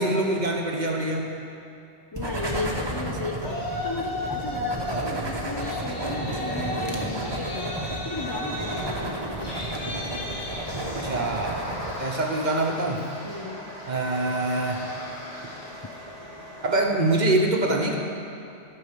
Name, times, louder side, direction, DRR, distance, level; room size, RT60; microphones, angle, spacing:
voice 1, 0.0-1.3 10.8-11.7 12.0-13.0 13.9-14.8 16.6-17.9, right 2 dB, 45° right, 1 dB, 1.1 m, -24 dB
voice 2, 2.1-9.5 13.2-13.7, left 3 dB, 30° left, 1 dB, 0.4 m, -35 dB
sound 1, 2.1-11.9, right 1 dB, 25° right, 1.1 m, -32 dB
Yell, 3.4-5.0 5.4-15.8, left 1 dB, 70° left, 2.3 m, -36 dB
sound 2, 8.1-16.8, equal, 90° left, 2.6 m, -43 dB
13.0 x 5.5 x 6.7 m, 2.8 s
omnidirectional pair, 1.1 m